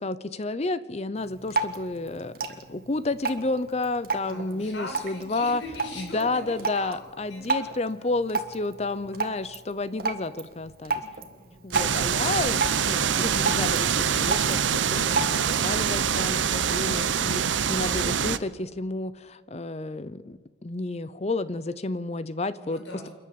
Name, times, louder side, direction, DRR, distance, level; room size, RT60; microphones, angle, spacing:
voice 1, 0.0-2.4 2.7-5.6 6.0-11.0 11.6-22.8, left 2 dB, 35° left, 16 dB, 0.6 m, -31 dB
Drip, 1.2-15.7, right 3 dB, 50° right, 1.8 m, -34 dB
voice 2, 4.2-7.0 7.3-8.1 10.9-12.2 22.6-23.1, left 1 dB, 80° left, 2 dB, 6.0 m, -42 dB
sound 1, 11.7-18.4, right 7 dB, 80° right, 0.8 m, -25 dB
28.5 x 11.0 x 8.6 m, 1.5 s
head